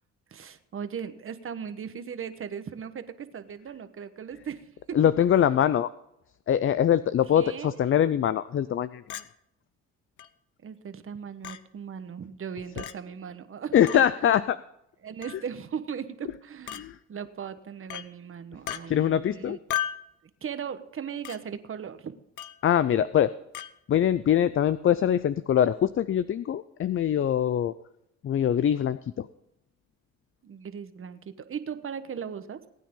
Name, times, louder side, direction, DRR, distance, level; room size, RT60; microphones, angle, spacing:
voice 1, 0.3-5.1 7.3-7.8 10.6-14.3 15.0-19.6 20.4-22.1 30.4-32.6, right 7 dB, 45° right, 11 dB, 1.2 m, -38 dB
voice 2, 4.9-5.9 6.5-9.0 13.7-14.6 16.8-17.0 18.9-19.6 22.6-23.3 23.9-27.7 28.2-29.3, left 10 dB, 45° left, 15 dB, 0.5 m, -23 dB
Chink clink, 9.1-9.3 10.2-10.3 11.4-11.6 12.8-12.9 13.9-14.0 15.2-15.4 16.7-16.8 17.9-18.1 18.7-18.8 19.7-20.1 21.2-21.4 22.4-22.6 23.5-23.7, left 11 dB, 75° left, 0.8 m, -34 dB
19.5 x 9.4 x 3.8 m, 0.79 s
cardioid pair, 90°, 30 cm